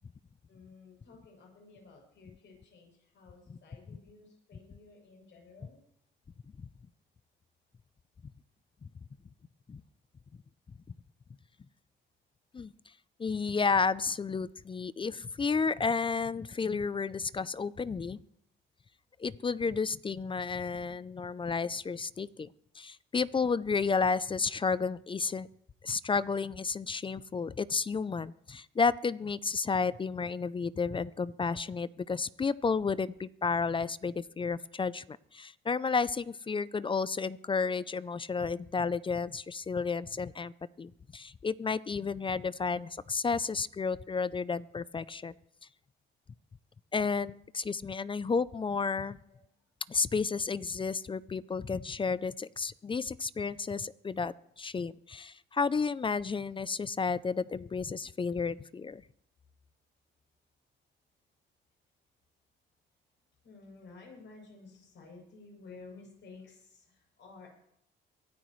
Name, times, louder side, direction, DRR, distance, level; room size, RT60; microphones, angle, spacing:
voice 1, 0.5-5.8 16.5-16.8 21.9-22.0 24.4-24.5 34.1-34.2 49.3-49.5 63.4-67.5, left 4 dB, 65° left, 0 dB, 7.7 m, -54 dB
voice 2, 13.2-18.2 19.2-22.5 22.8-25.5 25.8-35.0 35.3-40.5 40.8-45.3 46.9-49.2 49.9-59.0, left 5 dB, 25° left, 17 dB, 0.5 m, -32 dB
23.5 x 13.0 x 3.2 m, 0.70 s
cardioid pair, 90°, 20 cm